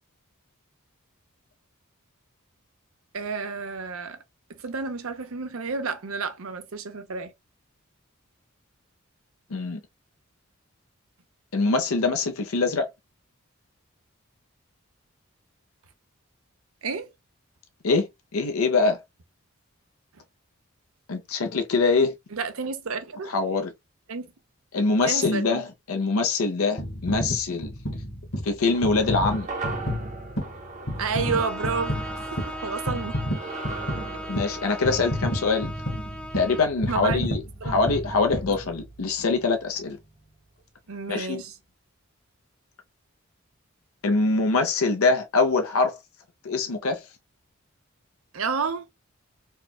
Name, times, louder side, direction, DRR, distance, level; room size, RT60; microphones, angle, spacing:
voice 1, 3.1-4.2 4.6-7.3 16.8-17.1 22.3-23.3 24.1-24.3 25.0-25.6 31.0-33.2 36.9-37.4 37.6-37.8 38.5-38.6 40.9-41.5 48.3-48.8, right 5 dB, 80° right, 0.6 m, -31 dB
voice 2, 11.5-12.9 17.8-18.1 18.3-19.0 21.1-22.1 23.3-23.7 24.7-27.7 28.4-29.5 34.3-35.7 36.3-40.0 41.1-41.4 44.0-46.0 46.4-47.0, left 3 dB, 85° left, 0.7 m, -24 dB
sound 1, 26.8-39.2 39.7-39.9, equal, 50° left, 1.2 m, -32 dB
sound 2, 28.7-37.2 37.5-37.6, right 3 dB, 35° right, 0.7 m, -39 dB
Bowed string instrument, 31.1-36.8, left 1 dB, 5° left, 0.4 m, -38 dB
4.4 x 2.2 x 2.2 m
head